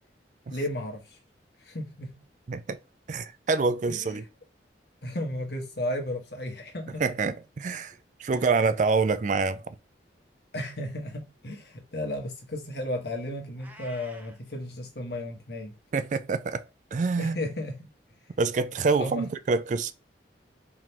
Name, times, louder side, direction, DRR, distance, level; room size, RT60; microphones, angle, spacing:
voice 1, 0.5-1.2 1.6-2.2 3.9-4.2 5.0-7.0 8.3-8.5 10.5-15.7 17.2-17.9 19.0-19.3, left 1 dB, 60° left, 1.5 m, -34 dB
voice 2, 2.5-2.8 3.1-4.2 6.9-9.8 15.9-16.7 16.9-17.4 18.4-19.9, right 4 dB, 45° right, 0.4 m, -26 dB
Meow, 13.6-14.4, right 1 dB, 10° right, 0.7 m, -49 dB
4.7 x 3.7 x 2.9 m
head